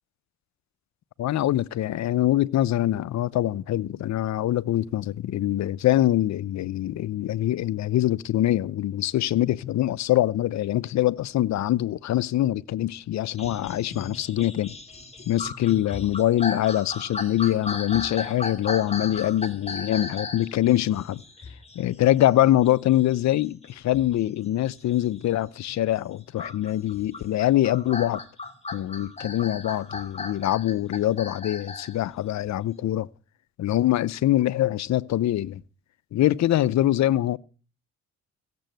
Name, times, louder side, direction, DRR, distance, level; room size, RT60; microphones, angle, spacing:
voice 1, 1.2-14.7 15.3-21.2 21.7-28.2 28.7-33.1 33.6-35.6 36.1-37.4, left 13 dB, 65° left, 0.7 m, -24 dB
sound 1, 13.3-25.8 26.4-31.9 32.5-32.6, left 3 dB, 20° left, 2.5 m, -36 dB
16.0 x 7.6 x 9.1 m
cardioid pair, 90°, 30 cm